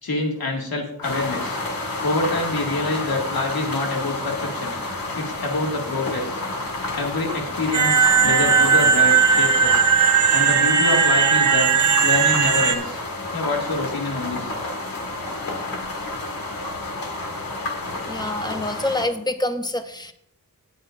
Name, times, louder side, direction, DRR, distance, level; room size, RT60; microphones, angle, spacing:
voice 1, 0.0-1.6 2.0-4.8 5.2-6.3 6.9-9.8 10.3-11.7 12.0-13.0 13.3-14.5, left 2 dB, 85° left, 1 dB, 2.1 m, -26 dB
sound 1, 1.0-19.1, left 2 dB, 70° left, 1.8 m, -30 dB
sound 2, 7.7-12.7, right 6 dB, 55° right, 0.7 m, -17 dB
voice 2, 18.1-20.1, left 1 dB, 10° left, 8 dB, 0.7 m, -26 dB
18.0 x 7.8 x 2.5 m, 0.68 s
wide cardioid pair, 125°, 35 cm